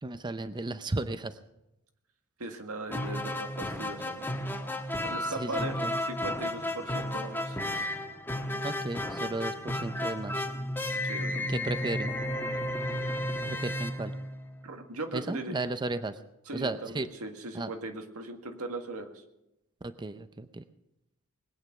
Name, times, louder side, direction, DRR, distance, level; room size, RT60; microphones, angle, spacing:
voice 1, 0.0-1.4 5.2-6.0 8.6-10.5 11.3-12.1 13.5-14.1 15.1-16.2 16.5-17.1 17.5-17.7 19.8-20.6, right 2 dB, 20° right, 11 dB, 0.5 m, -34 dB
voice 2, 2.4-4.3 5.0-7.6 11.0-11.4 14.6-15.5 16.5-19.2, right 2 dB, 90° right, 5 dB, 1.9 m, -39 dB
sound 1, 2.9-14.8, left 1 dB, 10° left, 1.4 m, -33 dB
21.0 x 9.1 x 5.9 m, 0.88 s
head